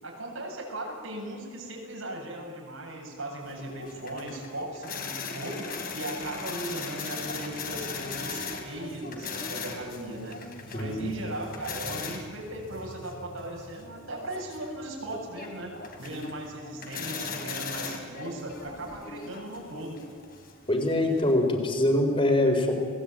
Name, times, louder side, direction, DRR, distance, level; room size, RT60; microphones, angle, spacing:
voice 1, 0.0-5.7 5.9-10.4 10.7-15.7 16.0-20.0, right 1 dB, 80° right, -1 dB, 8.0 m, -38 dB
sound 1, 3.4-21.3, left 4 dB, 45° left, 3.5 m, -39 dB
voice 2, 10.7-11.1 20.7-22.8, left 1 dB, 25° left, 3 dB, 4.3 m, -24 dB
29.5 x 20.5 x 9.0 m, 2.1 s
head